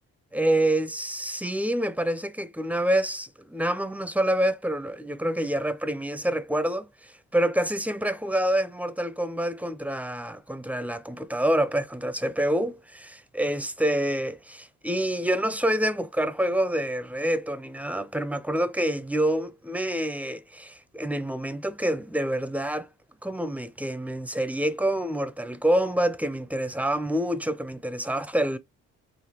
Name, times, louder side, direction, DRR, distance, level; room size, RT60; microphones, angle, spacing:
voice 1, 0.3-22.9 23.2-28.6, right 1 dB, 5° right, 0.4 m, -27 dB
5.1 x 2.7 x 2.9 m
cardioid pair, 90°, 30 cm